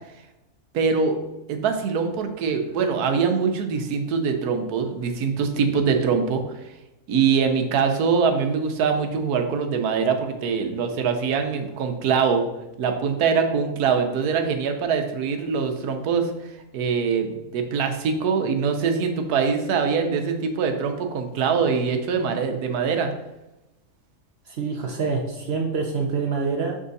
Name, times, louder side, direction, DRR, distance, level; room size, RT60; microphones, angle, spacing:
voice 1, 0.7-1.2 1.5-6.7 7.1-12.4 12.8-23.1, right 6 dB, 80° right, 5 dB, 1.2 m, -23 dB
voice 2, 24.5-26.7, right 4 dB, 60° right, 2 dB, 0.7 m, -26 dB
6.5 x 3.6 x 4.0 m, 0.95 s
omnidirectional pair, 1.6 m